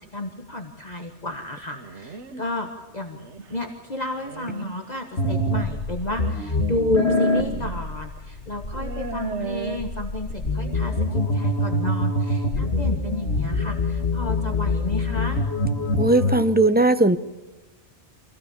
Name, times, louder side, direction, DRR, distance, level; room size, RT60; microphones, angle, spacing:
voice 1, 0.1-3.2 3.5-15.4, left 1 dB, 40° left, 3 dB, 1.6 m, -31 dB
sound 1, 1.7-2.5 3.1-3.6 4.2-4.8 6.0-6.1 7.3-7.9 8.2-8.3 8.7-9.8, right 5 dB, 80° right, 1.5 m, -35 dB
sound 2, 5.2-16.4, left 2 dB, 70° left, 2.1 m, -25 dB
voice 2, 16.0-17.2, right 2 dB, 10° right, 11 dB, 0.6 m, -18 dB
25.5 x 17.0 x 7.2 m, 1.1 s
omnidirectional pair, 1.2 m